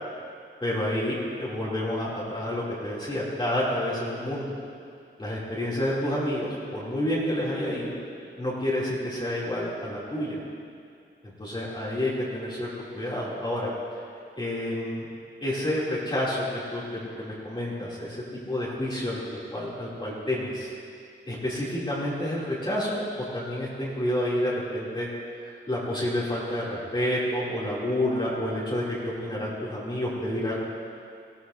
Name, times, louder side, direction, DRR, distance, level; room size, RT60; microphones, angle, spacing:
voice 1, 0.6-4.5 5.2-8.0 8.4-10.4 11.2-13.7 14.3-15.1 15.4-19.2 19.5-20.7 21.3-25.1 25.7-30.6, left 1 dB, 25° left, -8 dB, 2.8 m, -29 dB
20.0 x 15.5 x 2.7 m, 2.3 s
wide cardioid pair, 125°, 19 cm